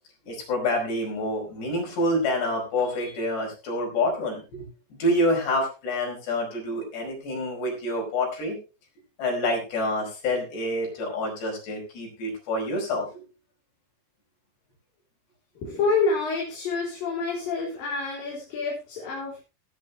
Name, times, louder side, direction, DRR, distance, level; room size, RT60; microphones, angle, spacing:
voice 1, 0.2-4.7 5.0-8.6 9.2-13.2, left 1 dB, 85° left, -1 dB, 7.3 m, -27 dB
voice 2, 15.6-19.4, left 4 dB, 60° left, -4 dB, 5.4 m, -28 dB
18.0 x 9.6 x 3.3 m, 0.31 s
omnidirectional pair, 4.7 m